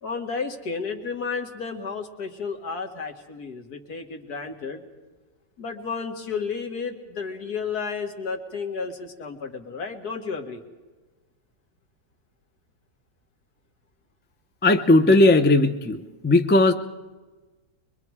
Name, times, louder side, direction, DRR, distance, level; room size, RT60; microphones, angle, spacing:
voice 1, 0.0-4.8 5.6-10.6, left 5 dB, 70° left, 4 dB, 2.3 m, -32 dB
voice 2, 14.6-16.7, left 2 dB, 15° left, 8 dB, 0.3 m, -17 dB
24.0 x 23.0 x 4.8 m, 1.2 s
omnidirectional pair, 1.7 m